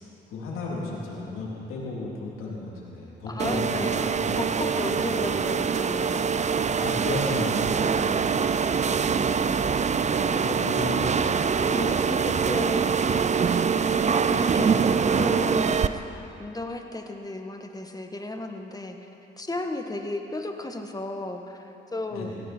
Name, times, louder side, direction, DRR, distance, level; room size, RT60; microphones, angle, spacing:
voice 1, 0.3-3.9 4.2-4.4 5.0-5.1 6.8-8.1 8.5-8.7 9.1-9.5 9.8-10.1 10.4-11.2 22.1-22.4, left 2 dB, 75° left, -5 dB, 3.6 m, -34 dB
voice 2, 3.3-6.4 7.9-8.6 11.6-13.0 13.4-13.6 14.1-15.9 16.4-19.1 19.4-22.3, left 2 dB, 15° left, 4 dB, 1.7 m, -34 dB
sound 1, 3.4-15.9, right 6 dB, 35° right, 0.6 m, -24 dB
17.0 x 15.5 x 4.6 m, 3.0 s
supercardioid pair, 60°, 21 cm